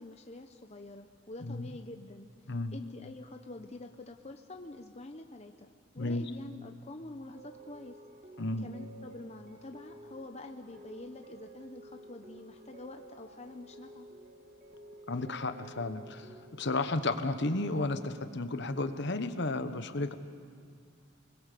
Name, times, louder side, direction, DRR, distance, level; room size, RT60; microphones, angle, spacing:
voice 1, 0.0-8.0 8.6-14.1, left 2 dB, 30° left, 5 dB, 0.8 m, -47 dB
voice 2, 2.5-2.8 6.0-6.2 8.4-8.7 15.1-20.1, left 2 dB, 55° left, 10 dB, 1.1 m, -33 dB
sound 1, 7.3-19.0, right 1 dB, 40° right, 2.1 m, -53 dB
29.5 x 21.0 x 6.8 m, 2.2 s
head